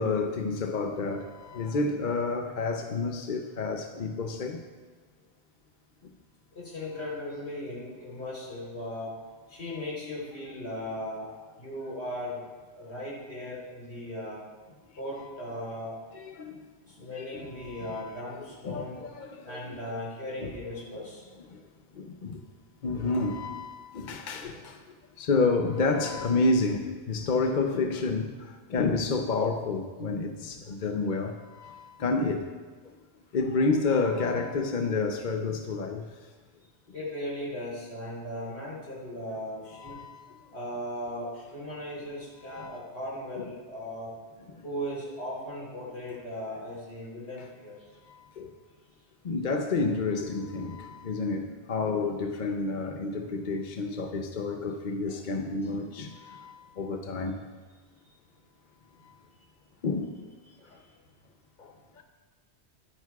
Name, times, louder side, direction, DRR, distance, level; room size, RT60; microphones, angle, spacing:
voice 1, 0.0-4.6 16.1-16.6 17.0-18.3 18.6-19.9 20.4-20.5 21.5-21.6 21.9-22.4 22.8-32.5 32.8-32.9 33.3-36.1 39.8-40.4 42.5-42.7 43.4-43.5 44.5-44.6 48.1-48.5 49.2-57.4 59.8-60.2 61.6-62.0, left 3 dB, 50° left, 0.8 m, -30 dB
voice 2, 6.5-9.1 9.5-11.3 11.6-12.4 12.8-14.4 15.0-15.9 16.9-19.0 19.4-21.3 36.9-40.0 40.5-44.1 44.6-47.8 54.0-54.4 55.1-55.2 55.6-55.7 60.5-60.7, left 1 dB, 65° left, 4.0 m, -37 dB
21.5 x 9.3 x 2.4 m
omnidirectional pair, 1.2 m